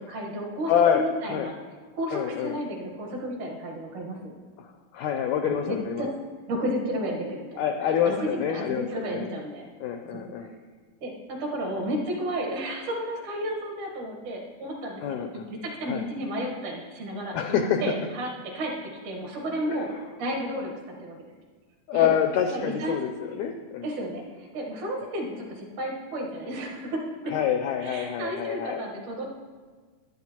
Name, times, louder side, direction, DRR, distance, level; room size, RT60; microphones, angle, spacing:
voice 1, 0.0-1.5 1.9-4.4 5.4-6.1 6.5-7.6 8.0-9.7 10.1-10.2 11.0-15.3 15.6-17.3 17.8-18.7 19.0-19.9 20.2-20.7 21.0-21.2 21.9-22.1 22.5-23.0 23.8-27.3 27.8-29.3, right 1 dB, 65° right, -1 dB, 2.8 m, -32 dB
voice 2, 0.7-1.5 2.1-2.6 4.9-6.1 7.6-9.2 9.8-10.5 15.0-15.5 15.9-16.0 17.3-17.8 21.9-23.9 27.3-28.8, left 8 dB, 85° left, 5 dB, 1.6 m, -26 dB
12.0 x 11.0 x 3.0 m, 1.5 s
omnidirectional pair, 3.9 m